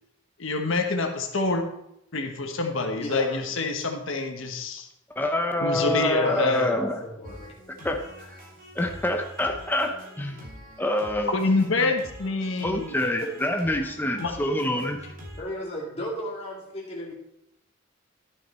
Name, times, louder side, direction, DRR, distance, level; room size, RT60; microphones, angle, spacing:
voice 1, 0.4-1.6 2.1-4.9 5.6-6.7 11.3-13.0 14.2-14.3, left 3 dB, 70° left, 4 dB, 1.2 m, -26 dB
voice 2, 2.9-3.4 3.8-3.9 5.8-7.6 13.2-13.3 15.4-17.1, equal, 30° left, -4 dB, 2.3 m, -34 dB
voice 3, 5.2-7.0 7.8-8.3 8.8-9.9 10.2-10.4 10.8-11.3 11.8-11.9 12.6-15.0, left 1 dB, 10° left, 3 dB, 0.7 m, -26 dB
sound 1, 7.2-15.4, equal, 45° right, 2.7 m, -45 dB
11.5 x 6.6 x 4.3 m, 0.79 s
head